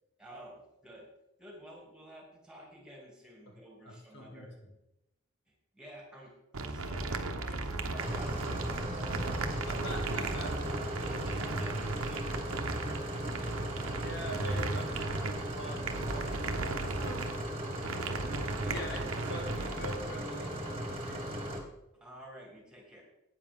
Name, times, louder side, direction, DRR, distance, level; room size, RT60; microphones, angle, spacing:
voice 1, 0.2-1.1 1.4-4.5 5.5-9.6 10.4-12.8 14.5-15.2 18.6-18.8 21.9-23.0, right 1 dB, 5° right, -2 dB, 2.6 m, -51 dB
voice 2, 3.8-4.7 9.7-10.5 13.9-18.2 18.5-21.5, left 1 dB, 55° left, 2 dB, 1.7 m, -45 dB
sound 1, 6.5-19.9, right 3 dB, 85° right, 1.0 m, -36 dB
sound 2, 8.0-21.6, right 1 dB, 25° right, 1.7 m, -37 dB
12.0 x 8.9 x 3.7 m, 0.88 s
head